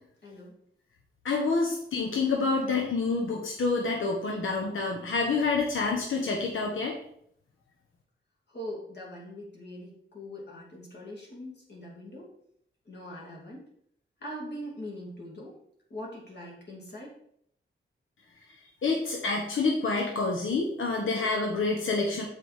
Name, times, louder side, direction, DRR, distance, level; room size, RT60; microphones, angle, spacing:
voice 1, 0.2-0.5 1.6-1.7 8.5-12.3 12.9-13.6 14.2-15.5 15.9-17.1, equal, 55° left, -3 dB, 2.6 m, -42 dB
voice 2, 1.2-7.0 18.8-22.2, left 3 dB, 75° left, 0 dB, 1.1 m, -28 dB
6.8 x 4.8 x 5.1 m, 0.69 s
wide cardioid pair, 175°, 21 cm